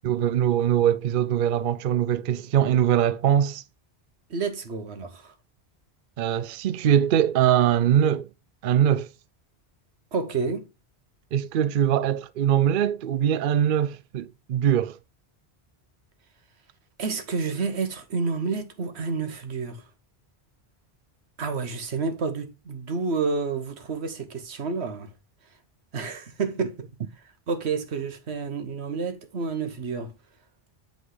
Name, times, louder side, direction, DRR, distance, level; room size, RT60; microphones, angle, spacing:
voice 1, 0.0-3.6 6.2-8.3 8.6-9.1 11.3-15.0, right 10 dB, 60° right, 0.6 m, -22 dB
voice 2, 4.3-5.3 10.1-10.7 17.0-19.9 21.4-25.1 25.9-26.8 27.1-30.1, right 4 dB, 90° right, 1.3 m, -29 dB
8.0 x 3.9 x 4.7 m
omnidirectional pair, 1.1 m